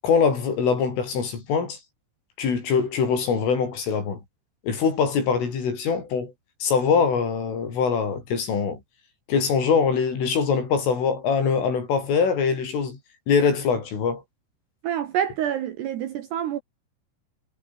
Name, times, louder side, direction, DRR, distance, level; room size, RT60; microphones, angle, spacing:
voice 1, 0.0-1.8 2.4-4.2 4.6-6.3 6.6-8.8 9.3-13.0 13.3-14.2, left 6 dB, 85° left, 9.0 m, -23 dB
voice 2, 14.8-16.6, right 10 dB, 65° right, 3.4 m, -27 dB
omnidirectional pair, 5.6 m